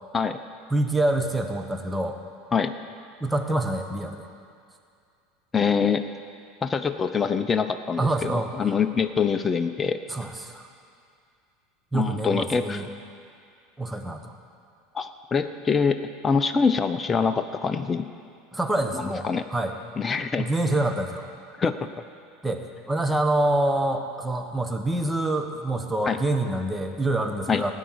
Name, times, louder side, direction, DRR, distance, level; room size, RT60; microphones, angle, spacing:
voice 1, 0.7-2.2 3.2-4.3 8.0-8.5 10.1-10.6 11.9-12.9 13.8-14.3 18.5-19.7 20.4-21.2 22.4-27.7, right 1 dB, 10° right, 5 dB, 1.2 m, -26 dB
voice 2, 5.5-6.0 6.6-10.0 11.9-12.8 14.9-18.1 18.9-19.5 20.0-20.5 21.6-21.7 26.0-26.2 27.5-27.6, left 5 dB, 25° left, 9 dB, 0.6 m, -24 dB
16.5 x 9.1 x 4.8 m, 2.3 s
hypercardioid pair, 75°, 0 cm